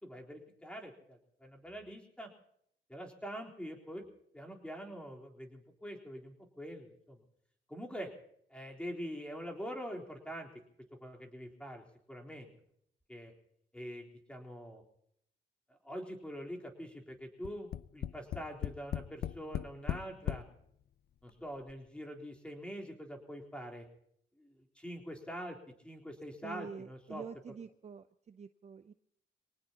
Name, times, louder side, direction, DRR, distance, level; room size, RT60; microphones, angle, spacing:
voice 1, 0.0-2.3 2.9-4.0 4.3-7.2 7.7-8.1 8.5-10.5 11.0-12.5 13.1-13.3 13.7-14.8 15.7-20.4 21.2-23.9 24.4-25.6 25.8-27.2, equal, 5° left, 0 dB, 3.8 m, -44 dB
Tap, 17.4-20.5 21.3-21.4 21.7-21.8, left 10 dB, 55° left, 0.6 m, -37 dB
voice 2, 26.4-28.9, right 6 dB, 35° right, 10 dB, 0.6 m, -47 dB
25.0 x 18.5 x 2.9 m, 0.72 s
cardioid pair, 90°, 20 cm